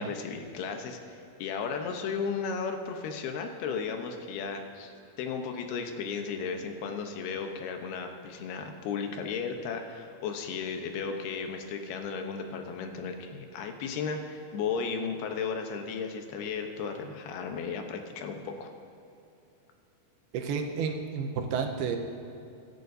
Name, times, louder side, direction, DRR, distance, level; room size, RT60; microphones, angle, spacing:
voice 1, 0.0-18.7, left 5 dB, 80° left, 5 dB, 2.9 m, -35 dB
voice 2, 20.3-22.0, right 6 dB, 85° right, 4 dB, 2.8 m, -31 dB
24.5 x 11.5 x 2.7 m, 2.8 s
omnidirectional pair, 4.5 m